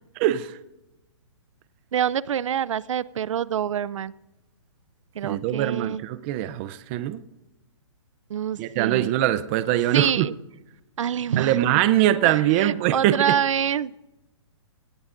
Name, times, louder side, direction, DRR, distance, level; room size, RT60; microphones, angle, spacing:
voice 1, 0.2-0.6 5.2-7.2 8.6-10.3 11.4-13.4, right 13 dB, 25° right, 13 dB, 0.5 m, -22 dB
voice 2, 1.9-4.1 5.2-6.0 8.3-9.1 9.9-10.3 11.0-11.6 12.2-13.9, right 9 dB, 80° right, 21 dB, 0.4 m, -26 dB
18.0 x 17.5 x 2.5 m, 0.99 s
hypercardioid pair, 155°, 16 cm